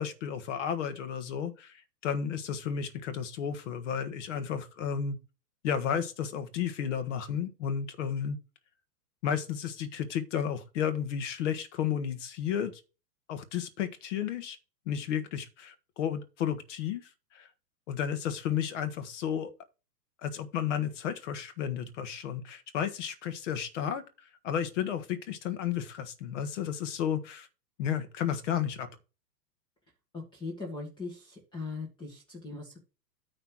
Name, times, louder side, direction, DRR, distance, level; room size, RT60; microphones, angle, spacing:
voice 1, 0.0-5.2 5.6-8.4 9.2-12.8 13.3-14.6 14.9-17.5 17.9-19.5 20.2-24.0 24.4-27.5 27.8-28.9, left 8 dB, 45° left, 1.3 m, -32 dB
voice 2, 30.4-32.8, left 3 dB, 10° left, 1.6 m, -39 dB
9.5 x 3.3 x 6.0 m
hypercardioid pair, 155°, 50 cm